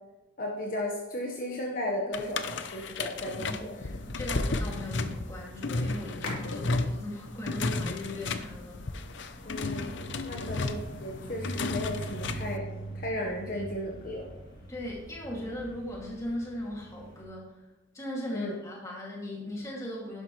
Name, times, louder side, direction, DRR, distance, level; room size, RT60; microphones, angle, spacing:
voice 1, 0.4-3.8 6.6-6.8 9.4-12.6 12.9-14.3 18.3-18.6, left 1 dB, 45° left, -1 dB, 1.2 m, -35 dB
sound 1, 2.1-12.6, left 3 dB, 60° left, 0.7 m, -33 dB
voice 2, 3.4-8.8 10.4-10.7 14.7-17.5 17.9-20.2, left 1 dB, 15° left, -3 dB, 2.5 m, -38 dB
sound 2, 3.9-17.2, right 1 dB, 75° left, 3.5 m, -44 dB
11.5 x 10.5 x 3.2 m, 0.98 s
head